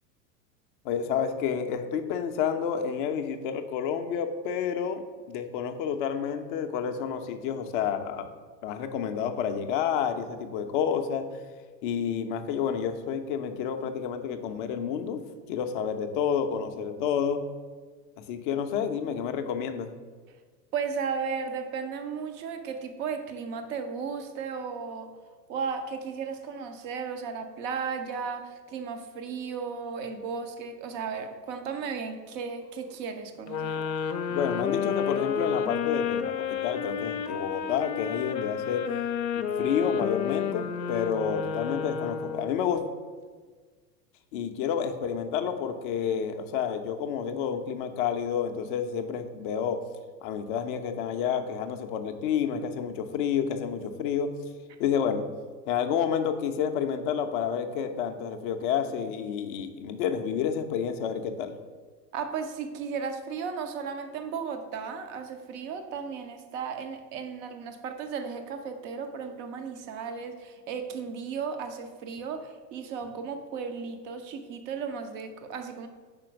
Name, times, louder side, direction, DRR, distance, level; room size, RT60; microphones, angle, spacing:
voice 1, 0.8-8.3 8.6-11.3 11.8-15.2 15.5-17.4 18.3-19.9 34.3-36.3 36.6-38.8 39.3-42.8 44.3-49.8 50.2-54.3 54.8-55.3 55.7-61.5, left 7 dB, 35° left, 6 dB, 0.5 m, -29 dB
voice 2, 20.7-25.2 25.5-33.8 62.1-75.9, right 6 dB, 25° right, 7 dB, 0.4 m, -35 dB
sound 1, 33.5-42.7, left 7 dB, 85° left, 0.6 m, -31 dB
5.1 x 4.4 x 5.9 m, 1.5 s
figure-of-eight pair, 90°, 49 cm